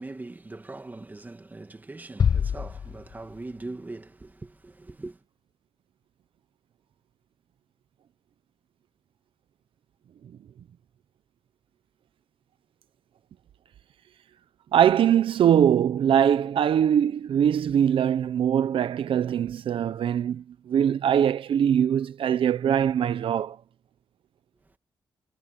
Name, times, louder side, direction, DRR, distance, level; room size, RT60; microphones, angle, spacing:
voice 1, 0.0-5.2, right 2 dB, 20° right, 2.1 m, -41 dB
sound 1, 2.2-3.8, left 7 dB, 45° left, 0.4 m, -27 dB
voice 2, 14.7-23.6, right 9 dB, 90° right, 0.8 m, -22 dB
wide cardioid pair, 120°, 9 cm